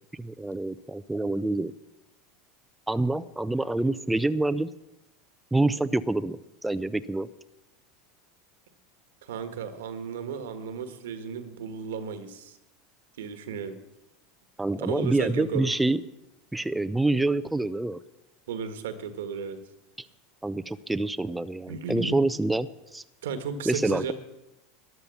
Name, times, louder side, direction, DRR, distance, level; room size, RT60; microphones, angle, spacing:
voice 1, 0.2-1.7 2.9-4.7 5.5-7.3 14.6-16.0 16.5-18.0 20.0-20.1 20.4-23.0 23.7-24.1, right 2 dB, 5° right, 11 dB, 0.6 m, -27 dB
voice 2, 9.2-12.6 13.2-13.8 14.8-15.7 18.5-19.6 21.7-22.2 23.2-24.1, right 6 dB, 80° right, 9 dB, 1.6 m, -34 dB
13.0 x 10.5 x 7.0 m, 0.90 s
hypercardioid pair, 100°, 0 cm